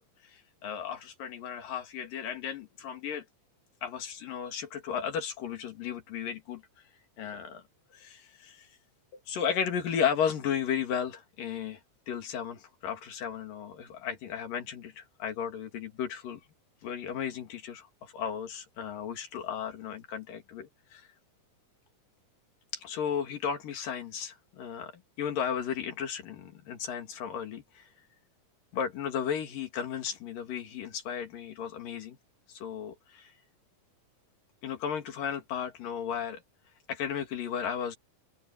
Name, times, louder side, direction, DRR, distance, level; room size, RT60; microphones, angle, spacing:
voice 1, 0.3-3.2 3.8-6.6 7.2-7.6 7.9-8.7 9.3-11.8 12.1-16.4 16.8-21.1 22.7-24.9 25.2-27.9 28.7-32.2 32.5-33.3 34.6-36.4 36.9-38.0, left 8 dB, 75° left, 3.9 m, -34 dB
open air
omnidirectional pair, 4.0 m